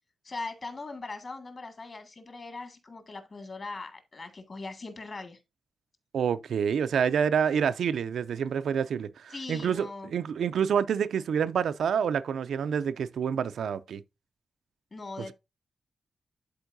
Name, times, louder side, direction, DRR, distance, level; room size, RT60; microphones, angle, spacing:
voice 1, 0.2-5.4 9.3-10.1 14.9-15.3, left 3 dB, 40° left, 1.8 m, -40 dB
voice 2, 6.1-14.0, right 7 dB, 85° right, 0.4 m, -28 dB
11.5 x 4.4 x 2.6 m
wide cardioid pair, 130°, 0 cm